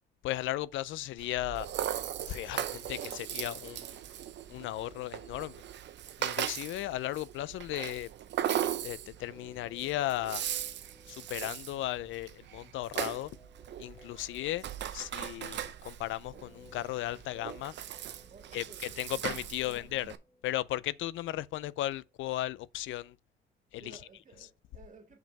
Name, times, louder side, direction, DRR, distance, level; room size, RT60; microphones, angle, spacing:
voice 1, 0.2-1.7 2.2-4.0 4.5-5.6 6.2-8.1 8.8-10.4 11.1-13.3 13.8-14.6 14.9-17.7 18.5-20.1 20.4-23.2 23.7-23.8, left 15 dB, 80° left, 0.4 m, -36 dB
Rattle (instrument), 1.2-20.2, right 11 dB, 65° right, 0.6 m, -38 dB
sound 1, 9.2-21.3 21.6-21.7, left 1 dB, 15° left, 1.1 m, -60 dB
voice 2, 18.3-19.3 19.6-19.9 23.8-25.2, right 4 dB, 40° right, 1.8 m, -55 dB
5.4 x 5.1 x 5.3 m
cardioid pair, 90°, 20 cm